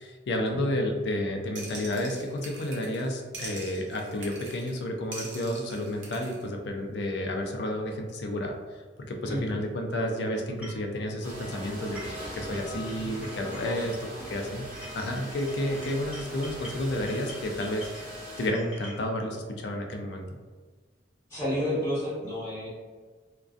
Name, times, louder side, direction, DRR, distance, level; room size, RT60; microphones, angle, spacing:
voice 1, 0.0-8.5 9.1-12.0 12.3-13.9 14.3-14.7 14.9-17.9 18.4-20.4, left 1 dB, 65° left, 2 dB, 0.4 m, -31 dB
sound 1, 1.6-3.1 3.3-4.8 5.1-6.4, right 3 dB, 85° right, 0.6 m, -43 dB
voice 2, 9.2-9.6 13.6-13.9 21.3-22.7, equal, 15° left, -10 dB, 1.2 m, -31 dB
sound 2, 10.6-10.9 11.7-12.3 12.5-14.4 14.7-19.0, left 1 dB, 5° right, 0.6 m, -47 dB
sound 3, 11.2-18.5, right 1 dB, 45° right, 1.0 m, -41 dB
2.4 x 2.2 x 2.4 m, 1.4 s
head